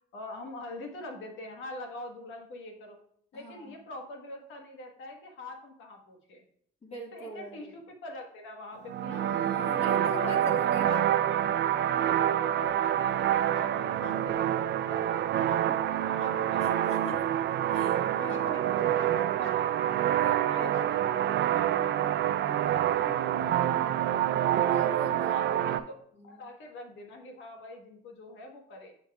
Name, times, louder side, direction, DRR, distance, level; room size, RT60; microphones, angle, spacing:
voice 1, 0.1-3.0 3.3-6.4 7.1-9.3 9.7-11.4 12.0-16.8 17.6-19.7 20.2-24.2 25.3-25.8 26.2-28.9, left 2 dB, 80° left, 3 dB, 1.3 m, -44 dB
voice 2, 3.3-3.8 6.8-7.7 9.1-11.0 16.6-17.3 17.7-18.6 19.9-20.9 24.6-25.6 26.1-26.4, left 2 dB, 30° left, 0 dB, 1.7 m, -43 dB
sound 1, 8.9-25.8, right 11 dB, 65° right, 0.4 m, -27 dB
7.3 x 6.0 x 2.3 m, 0.64 s
cardioid pair, 90°, 20 cm